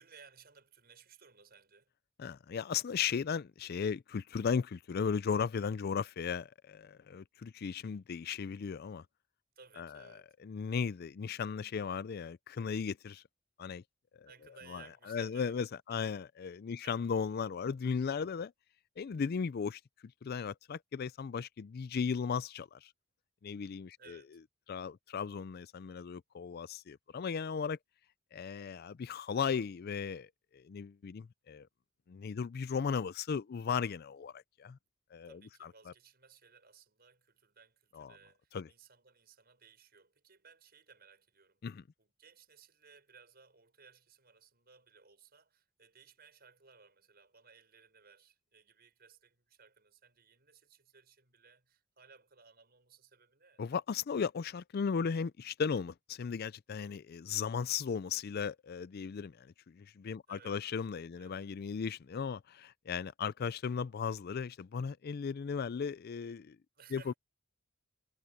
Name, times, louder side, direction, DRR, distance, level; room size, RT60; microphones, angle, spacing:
voice 1, 0.0-1.9 9.5-10.3 14.2-16.0 16.8-17.0 24.0-24.4 35.2-41.7 42.0-53.6 60.3-60.9 61.1-61.4 66.7-67.2, right 5 dB, 50° right, 6.7 m, -60 dB
voice 2, 2.2-9.0 9.8-13.2 13.6-13.8 14.1-14.3 14.7-18.5 19.0-19.8 20.2-22.9 23.4-24.2 24.7-27.8 28.3-31.7 32.1-34.8 35.1-35.9 37.9-38.1 38.5-38.7 41.6-41.8 53.6-66.6 66.9-67.1, left 6 dB, 50° left, 0.4 m, -36 dB
head